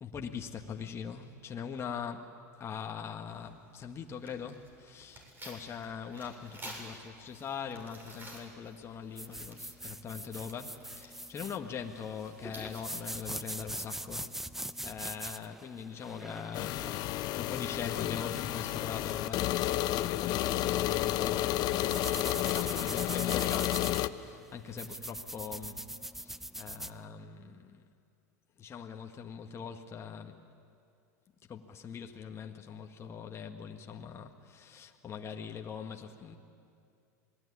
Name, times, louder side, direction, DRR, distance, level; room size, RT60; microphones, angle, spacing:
voice 1, 0.0-14.3 14.8-21.6 22.4-27.8 28.6-30.4 31.5-36.4, left 7 dB, 30° left, 3 dB, 1.9 m, -42 dB
Tearing, 3.3-14.0, right 1 dB, 25° right, 7.3 m, -52 dB
sound 1, 9.2-27.0, right 1 dB, 5° right, 0.9 m, -43 dB
sound 2, 16.5-24.1, left 14 dB, 50° left, 1.0 m, -31 dB
27.0 x 20.5 x 9.9 m, 2.4 s
hypercardioid pair, 95°, 9 cm